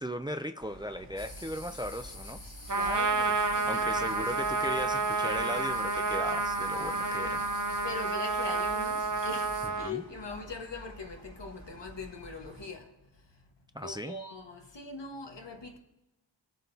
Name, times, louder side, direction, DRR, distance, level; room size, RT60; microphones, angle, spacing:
voice 1, 0.0-2.4 3.7-7.4 9.8-10.0 13.7-14.1, equal, 10° right, 0.4 m, -37 dB
sound 1, 0.6-12.7, right 1 dB, 65° right, 3.1 m, -50 dB
sound 2, 1.2-9.7, left 2 dB, 85° left, 3.1 m, -47 dB
voice 2, 2.7-4.1 7.8-12.9 13.8-15.8, left 3 dB, 70° left, 1.5 m, -41 dB
Trumpet, 2.7-9.9, right 3 dB, 45° right, 0.9 m, -30 dB
22.5 x 7.6 x 2.8 m
wide cardioid pair, 50°, 44 cm